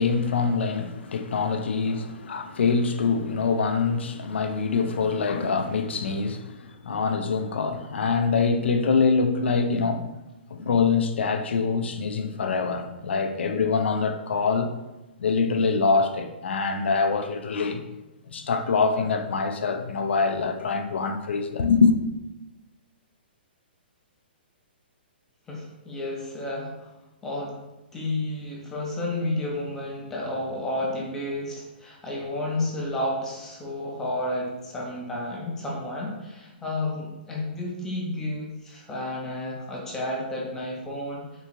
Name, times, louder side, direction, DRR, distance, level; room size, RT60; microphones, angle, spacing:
voice 1, 0.0-10.1 10.5-14.7 15.2-17.8 18.3-22.0, left 4 dB, 90° left, 0.4 m, -24 dB
voice 2, 25.5-26.9 27.2-27.6 27.9-41.3, left 1 dB, 5° left, 0.3 m, -31 dB
3.6 x 2.5 x 2.9 m
hypercardioid pair, 170°, 6 cm